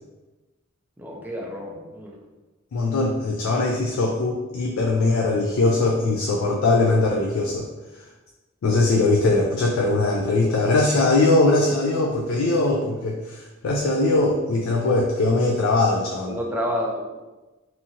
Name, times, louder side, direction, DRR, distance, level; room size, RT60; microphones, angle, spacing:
voice 1, 1.0-2.1 16.3-17.0, equal, 10° right, -1 dB, 0.4 m, -29 dB
voice 2, 2.7-7.7 8.6-16.4, left 2 dB, 70° left, -1 dB, 0.3 m, -21 dB
2.7 x 2.4 x 2.7 m, 1.2 s
head